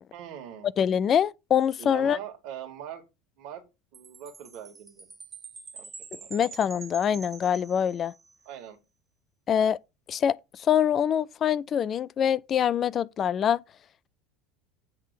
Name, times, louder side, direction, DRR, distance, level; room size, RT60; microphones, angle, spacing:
voice 1, 0.1-0.7 1.8-3.0 3.4-3.6 3.9-5.1 5.7-6.4 8.5-8.8, right 9 dB, 55° right, 2.0 m, -42 dB
voice 2, 0.8-2.2 6.3-8.1 9.5-9.8 10.1-13.6, left 8 dB, 40° left, 0.4 m, -24 dB
Chime, 3.9-8.4, right 5 dB, 25° right, 1.5 m, -46 dB
8.0 x 3.6 x 6.7 m
figure-of-eight pair, 70°, 0 cm